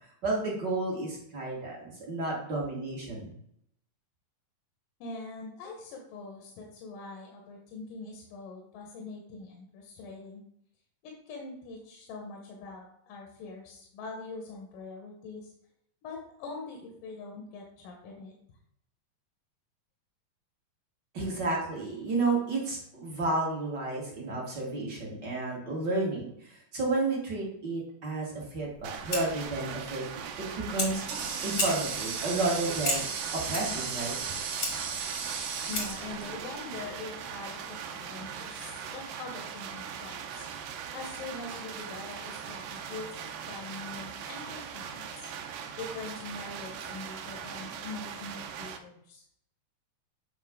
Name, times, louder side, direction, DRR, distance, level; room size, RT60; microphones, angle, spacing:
voice 1, 0.2-3.3 21.1-30.2 30.7-31.0 31.4-33.0 33.3-34.1, right 2 dB, 40° right, -3 dB, 1.9 m, -31 dB
voice 2, 5.0-10.4 11.0-15.5 16.0-18.4 35.7-40.5 40.9-45.3 45.8-49.2, left 3 dB, 80° left, 0 dB, 2.8 m, -43 dB
Fire, 28.6-36.1, left 2 dB, 40° left, 1.3 m, -37 dB
sound 1, 28.8-48.8, right 7 dB, 90° right, 2.4 m, -40 dB
Water tap faucet, 30.4-36.9, right 6 dB, 70° right, 2.5 m, -36 dB
9.1 x 5.1 x 3.6 m, 0.72 s
omnidirectional pair, 3.9 m